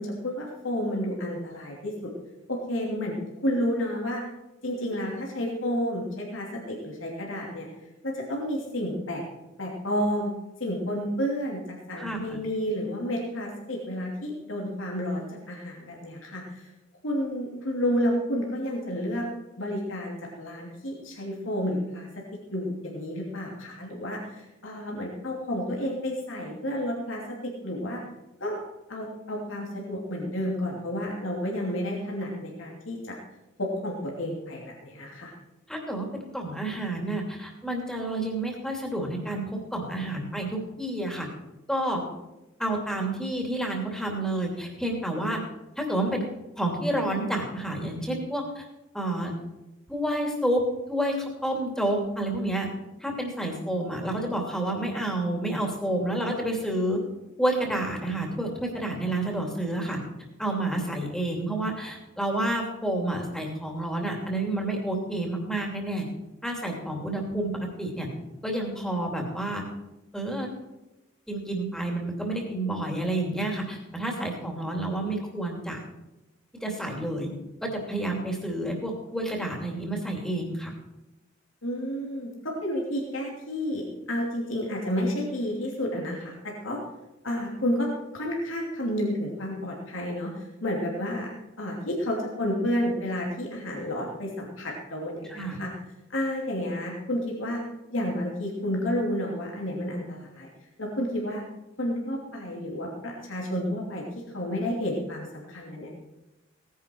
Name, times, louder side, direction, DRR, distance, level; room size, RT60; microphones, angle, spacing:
voice 1, 0.0-2.1 2.5-4.2 4.6-7.7 8.0-9.2 9.6-10.3 10.6-15.2 15.5-16.7 17.0-19.2 19.6-22.1 22.5-28.0 28.4-28.6 28.9-33.2 33.6-35.3 81.6-86.8 87.2-87.9 88.1-91.3 91.6-95.7 96.1-97.6 97.9-100.5 100.8-101.4 101.8-104.0 104.3-105.9, equal, 80° left, -2 dB, 2.9 m, -31 dB
voice 2, 12.0-12.4 35.7-41.3 41.7-42.0 42.6-45.4 45.8-46.2 46.6-48.6 48.9-49.3 49.9-52.7 53.0-57.0 57.4-60.0 60.4-66.1 66.4-68.1 68.4-69.6 70.1-70.5 71.3-75.8 76.6-77.3 77.6-80.7 95.3-95.6, right 1 dB, 5° left, 0 dB, 2.8 m, -29 dB
17.5 x 10.5 x 4.6 m, 0.97 s
head